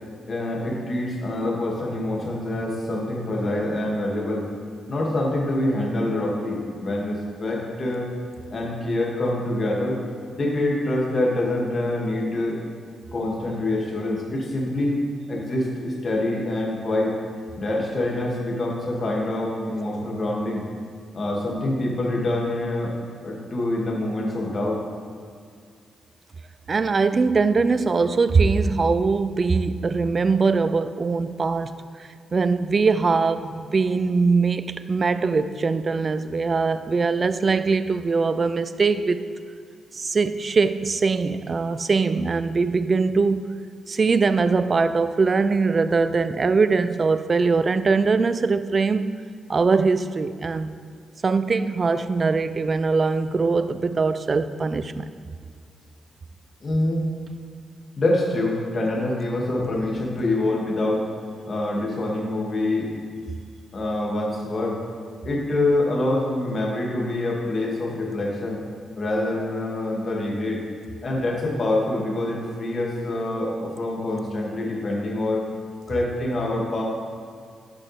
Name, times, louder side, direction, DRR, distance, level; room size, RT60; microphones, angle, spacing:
voice 1, 0.3-4.5 4.9-8.1 8.5-10.0 10.3-12.6 13.1-15.0 15.3-17.1 17.6-20.6 21.1-22.9 23.2-24.8 56.6-57.1 58.0-61.1 61.5-62.9 63.7-64.8 65.2-68.6 69.0-70.6 71.0-75.4 75.9-76.8, left 1 dB, 50° left, -2 dB, 2.2 m, -25 dB
voice 2, 26.7-31.7 32.3-39.3 39.9-43.5 43.9-49.1 49.5-50.7 51.2-55.1, right 4 dB, 45° right, 13 dB, 0.4 m, -22 dB
11.5 x 6.1 x 3.4 m, 2.1 s
hypercardioid pair, 45°, 0 cm